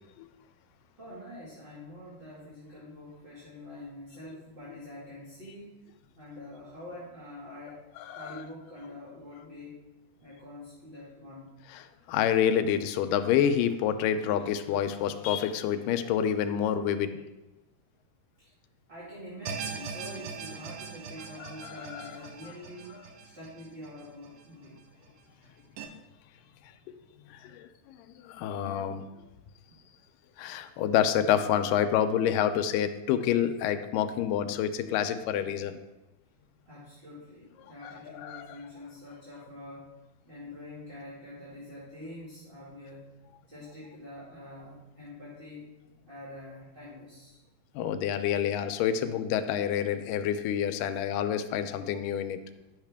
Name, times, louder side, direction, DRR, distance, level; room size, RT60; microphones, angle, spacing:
voice 1, 0.9-5.8 6.2-7.8 8.1-9.8 10.2-11.5 18.4-18.5 18.9-24.8 29.7-29.8 36.6-39.9 40.3-43.1 43.5-45.7 46.0-47.4, left 1 dB, 25° right, -10 dB, 1.3 m, -46 dB
voice 2, 11.7-17.2 21.4-22.1 27.3-27.7 28.2-29.0 30.4-35.8 37.8-38.5 47.8-52.4, left 9 dB, 85° left, 9 dB, 2.2 m, -28 dB
sound 1, 19.5-24.7 25.0-25.1 25.8-25.9, right 6 dB, 70° right, 1.9 m, -41 dB
11.0 x 5.7 x 3.5 m, 1.0 s
omnidirectional pair, 3.9 m